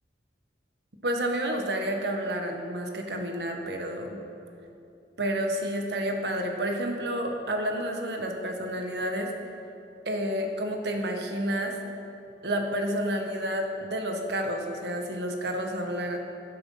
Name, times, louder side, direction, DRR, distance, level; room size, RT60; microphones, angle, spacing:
voice 1, 1.0-4.2 5.2-9.3 10.0-11.8 12.4-16.2, equal, 65° right, 3 dB, 1.5 m, -30 dB
11.5 x 11.5 x 5.6 m, 2.7 s
head